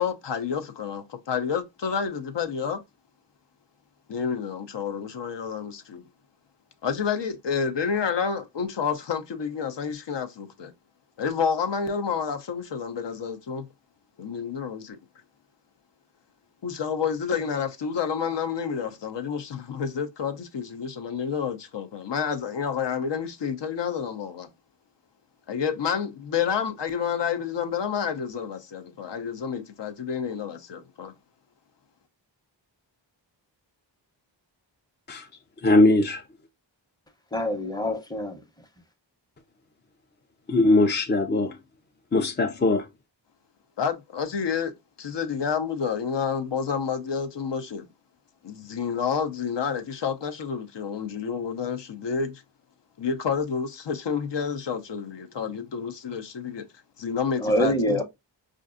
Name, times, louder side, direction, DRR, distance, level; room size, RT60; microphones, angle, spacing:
voice 1, 0.0-2.8 4.1-6.0 6.8-10.7 11.2-13.7 14.2-15.0 16.6-24.5 25.5-31.1 43.8-47.9 48.4-52.4 53.0-56.7 57.0-58.0, left 6 dB, 65° left, 0.7 m, -29 dB
voice 2, 35.6-36.2 40.5-41.6 42.1-42.9, left 2 dB, 25° left, 0.4 m, -20 dB
voice 3, 37.3-38.4 57.4-58.0, equal, 10° left, 0.8 m, -25 dB
5.1 x 2.5 x 2.5 m
wide cardioid pair, 115°, 46 cm